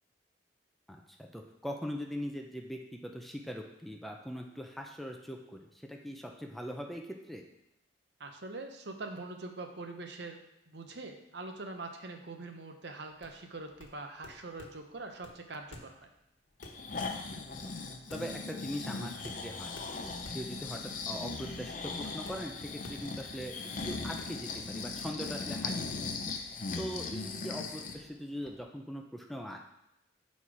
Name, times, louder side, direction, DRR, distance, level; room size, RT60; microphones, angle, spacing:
voice 1, 0.9-7.4 17.3-17.8 18.1-19.1 19.4-23.5 23.8-26.0 26.7-29.6, equal, ahead, 1 dB, 0.5 m, -41 dB
voice 2, 8.2-16.1, right 3 dB, 65° right, 4 dB, 0.8 m, -43 dB
sound 1, 13.2-25.3, left 1 dB, 85° left, 1.1 m, -54 dB
Breathing, 16.6-28.0 28.5-28.6, left 4 dB, 45° left, 0.6 m, -39 dB
7.6 x 4.2 x 4.8 m, 0.87 s
head